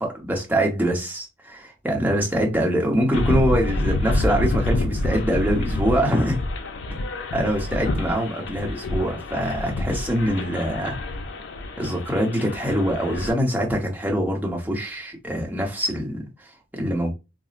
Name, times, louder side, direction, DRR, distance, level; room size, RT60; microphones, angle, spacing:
voice 1, 0.0-6.4 7.3-10.9 11.8-17.1, equal, 10° right, 0.9 m, -24 dB
sound 1, 3.1-13.3, left 2 dB, 75° left, 0.5 m, -27 dB
4.0 x 2.0 x 2.4 m
head